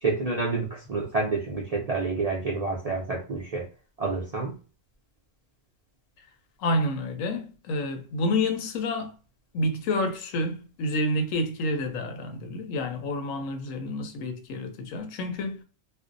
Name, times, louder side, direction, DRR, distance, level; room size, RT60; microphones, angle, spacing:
voice 1, 0.0-3.6 4.0-4.5, right 3 dB, 55° right, 0.4 m, -28 dB
voice 2, 6.6-9.1 9.5-15.6, left 1 dB, 80° left, 1.0 m, -29 dB
2.5 x 2.0 x 2.5 m
omnidirectional pair, 1.3 m